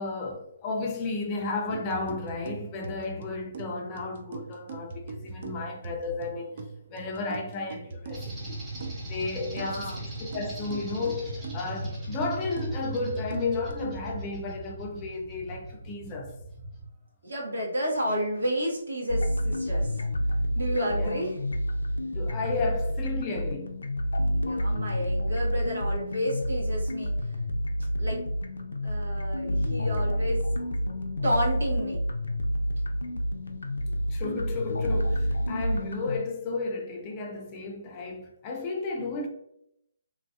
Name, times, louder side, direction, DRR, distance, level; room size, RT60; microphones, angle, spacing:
voice 1, 0.0-8.6 9.0-16.3 20.9-21.2 22.1-23.7 34.1-39.3, left 3 dB, 25° left, 0.5 m, -33 dB
sound 1, 1.7-13.7, right 3 dB, 50° right, 0.4 m, -41 dB
sound 2, 8.1-16.9, right 1 dB, 15° right, 1.0 m, -38 dB
voice 2, 9.5-10.0 17.2-20.0 20.5-21.4 24.3-27.4 28.0-28.2 28.8-30.4 31.2-32.0 34.7-34.8, equal, 85° right, 1.3 m, -31 dB
sound 3, 19.1-36.2, equal, 85° left, 0.5 m, -29 dB
3.0 x 2.6 x 2.3 m
hypercardioid pair, 150°, 0 cm